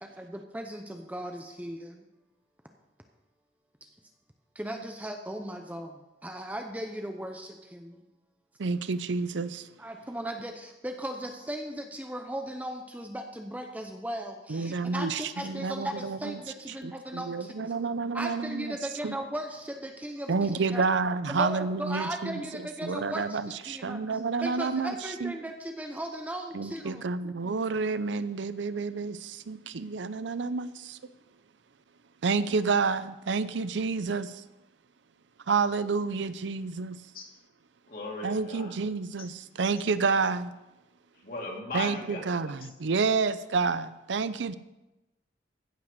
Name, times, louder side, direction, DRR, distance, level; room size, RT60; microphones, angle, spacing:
voice 1, 0.0-2.0 3.8-3.9 4.5-8.0 9.8-17.7 18.1-20.8 21.3-24.0 24.4-27.1, right 1 dB, 10° right, 0.7 m, -37 dB
voice 2, 8.6-9.7 14.5-16.4 16.8-18.8 19.0-19.2 20.3-24.9 25.2-25.3 26.5-31.0 32.2-34.4 35.5-37.0 38.2-40.5 41.7-44.5, right 4 dB, 80° right, 0.6 m, -29 dB
voice 3, 37.9-38.7 41.2-42.2, left 2 dB, 50° left, 2.7 m, -37 dB
15.5 x 5.9 x 6.6 m
head